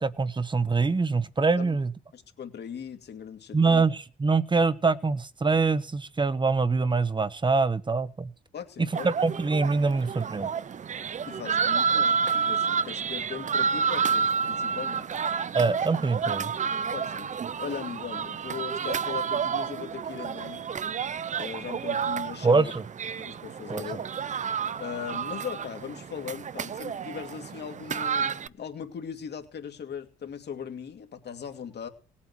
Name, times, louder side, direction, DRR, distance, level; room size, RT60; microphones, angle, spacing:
voice 1, 0.0-1.9 3.5-8.3 8.8-10.5 15.5-16.5 22.4-22.8 23.7-24.0, right 4 dB, 25° right, 14 dB, 1.2 m, -24 dB
voice 2, 2.1-3.8 8.5-9.1 11.3-15.0 16.9-17.3 17.6-20.7 21.4-22.7 23.2-24.0 24.8-31.9, left 7 dB, 60° left, 5 dB, 2.5 m, -39 dB
sound 1, 8.9-28.5, right 6 dB, 40° right, 0.6 m, -30 dB
18.0 x 8.6 x 6.2 m, 0.38 s
cardioid pair, 90°, 20 cm